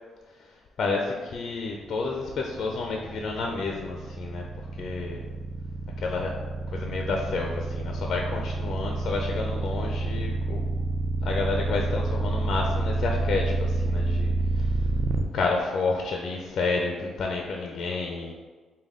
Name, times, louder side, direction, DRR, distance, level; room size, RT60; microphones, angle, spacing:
voice 1, 0.3-4.4 4.8-5.3 6.0-6.4 6.7-10.6 11.2-14.9 15.3-18.3, left 3 dB, 60° left, 1 dB, 0.5 m, -30 dB
sound 1, 2.0-15.2, right 3 dB, 35° right, 0.4 m, -28 dB
5.2 x 2.2 x 3.6 m, 1.4 s
cardioid pair, 90°, 0 cm